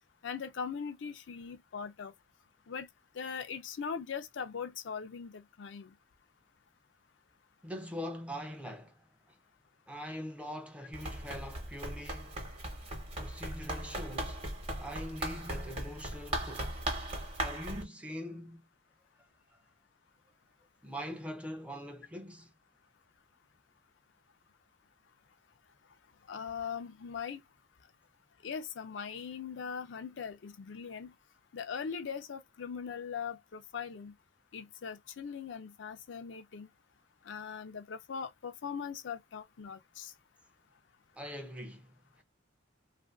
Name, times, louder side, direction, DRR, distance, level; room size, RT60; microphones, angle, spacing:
voice 1, 0.2-2.1 2.7-2.9 3.1-5.9 26.3-27.4 28.4-31.1 31.5-34.1 34.5-36.7 37.2-40.1, left 6 dB, 85° left, 0.5 m, -40 dB
voice 2, 7.6-9.4 9.9-12.3 13.2-14.4 14.8-16.7 17.4-18.7 19.2-19.3 20.8-22.5 41.1-42.2, equal, 5° right, 0.4 m, -43 dB
Run, 10.9-17.8, right 1 dB, 30° right, 0.9 m, -38 dB
2.8 x 2.5 x 2.3 m
head